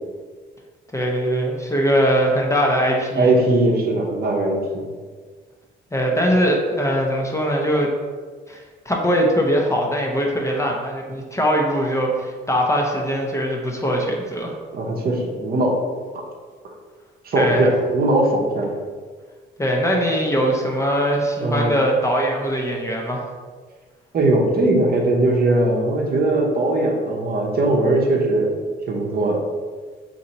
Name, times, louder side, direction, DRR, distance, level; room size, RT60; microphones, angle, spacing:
voice 1, 0.9-3.3 5.9-7.9 8.5-14.5 17.3-17.7 19.6-23.2, equal, 15° left, 0 dB, 0.5 m, -21 dB
voice 2, 3.2-4.9 14.7-15.8 17.2-18.7 21.4-21.8 24.1-28.5 28.9-29.4, right 2 dB, 50° right, 0 dB, 0.7 m, -20 dB
2.8 x 2.6 x 4.1 m, 1.5 s
cardioid pair, 90°, 20 cm